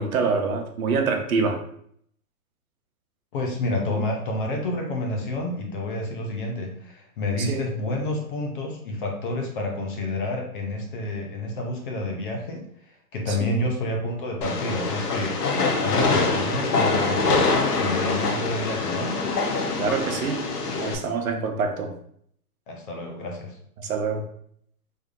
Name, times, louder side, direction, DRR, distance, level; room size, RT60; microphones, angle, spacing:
voice 1, 0.0-1.6 3.9-4.0 7.4-7.6 13.3-13.6 19.8-20.4 20.8-21.9 23.8-24.3, right 5 dB, 65° right, 4 dB, 0.8 m, -26 dB
voice 2, 3.3-12.6 13.1-15.4 15.8-19.2 22.7-23.6, left 2 dB, 35° left, 2 dB, 0.7 m, -29 dB
Train, 14.4-20.9, left 3 dB, 90° left, 0.9 m, -24 dB
3.5 x 2.6 x 3.7 m, 0.66 s
hypercardioid pair, 150°, 45 cm